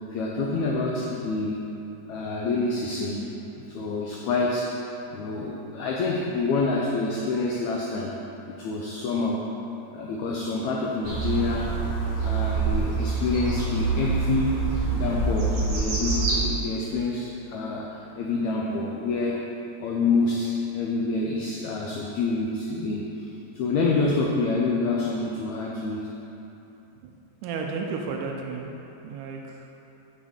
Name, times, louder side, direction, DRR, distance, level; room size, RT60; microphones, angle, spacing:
voice 1, 0.1-1.7 2.1-4.8 5.1-8.1 8.6-9.4 9.9-11.8 12.2-14.6 14.9-19.4 19.8-23.3 23.5-26.2, left 3 dB, 85° left, -2 dB, 1.6 m, -27 dB
sound 1, 11.0-16.4, right 4 dB, 40° right, 1.8 m, -26 dB
voice 2, 27.4-28.7 29.0-29.7, right 4 dB, 80° right, 1 dB, 2.0 m, -32 dB
8.1 x 5.9 x 3.7 m, 2.9 s
omnidirectional pair, 3.9 m